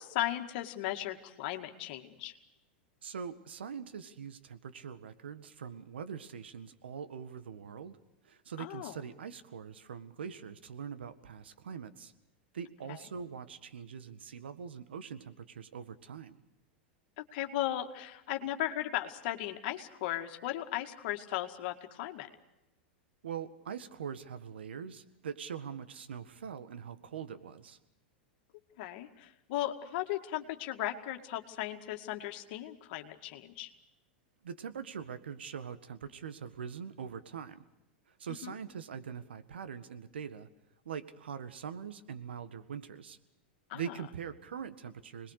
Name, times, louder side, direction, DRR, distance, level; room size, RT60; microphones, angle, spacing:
voice 1, 0.0-2.3 8.6-9.0 12.9-13.0 17.2-22.3 28.8-33.7 38.4-38.5 43.7-44.0, left 13 dB, 60° left, 5 dB, 2.1 m, -36 dB
voice 2, 3.0-8.0 8.2-12.1 12.5-16.4 23.2-27.8 34.4-37.6 38.2-40.5 40.8-43.2 43.7-45.3, right 7 dB, 85° right, 12 dB, 1.7 m, -43 dB
26.5 x 20.5 x 6.6 m, 0.94 s
hypercardioid pair, 105°, 6 cm